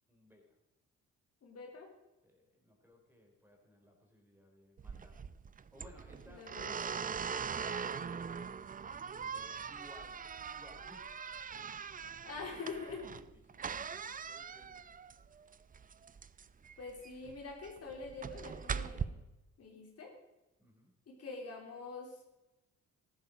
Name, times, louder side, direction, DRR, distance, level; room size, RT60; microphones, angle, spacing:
voice 1, 0.1-0.6 2.2-5.2 5.7-8.6 9.1-11.2 12.3-12.5 13.5-14.9 20.6-20.9, left 1 dB, 5° right, 1 dB, 3.8 m, -60 dB
voice 2, 1.4-1.9 6.3-6.8 12.2-13.1 16.8-19.2 19.6-20.1 21.1-22.2, left 4 dB, 55° left, 0 dB, 3.2 m, -45 dB
sound 1, 4.8-19.0, right 6 dB, 30° right, 0.5 m, -42 dB
14.5 x 11.5 x 5.1 m, 1.0 s
cardioid pair, 90°, 30 cm